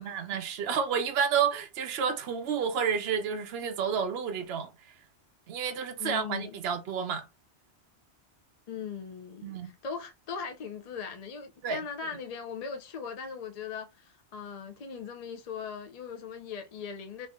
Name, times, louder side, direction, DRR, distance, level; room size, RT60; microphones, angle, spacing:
voice 1, 0.0-4.7 5.5-7.3 9.4-9.7 11.6-11.8, right 7 dB, 70° right, 0.8 m, -30 dB
voice 2, 6.0-6.6 8.7-17.3, left 6 dB, 50° left, 0.4 m, -39 dB
3.3 x 2.6 x 3.5 m
omnidirectional pair, 1.1 m